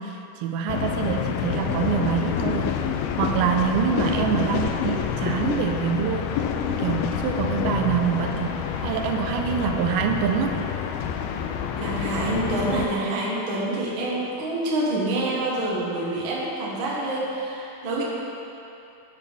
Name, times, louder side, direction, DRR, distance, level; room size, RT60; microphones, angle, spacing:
voice 1, 0.0-2.8 3.2-10.6, right 7 dB, 90° right, 4 dB, 2.5 m, -26 dB
sound 1, 0.7-12.9, left 8 dB, 85° left, 2.5 m, -27 dB
voice 2, 11.8-18.0, right 1 dB, 50° right, -4 dB, 1.5 m, -27 dB
12.0 x 8.7 x 3.5 m, 2.9 s
omnidirectional pair, 4.3 m